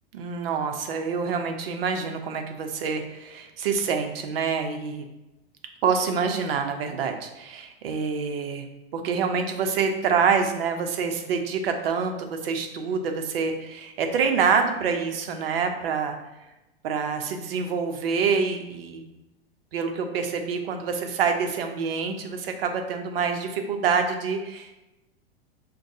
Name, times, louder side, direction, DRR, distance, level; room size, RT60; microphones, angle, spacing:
voice 1, 0.1-5.0 5.8-8.7 8.9-16.1 16.8-19.0 19.7-24.7, right 5 dB, 70° right, 5 dB, 0.7 m, -26 dB
6.1 x 2.2 x 2.7 m, 0.98 s
hypercardioid pair, 105°, 30 cm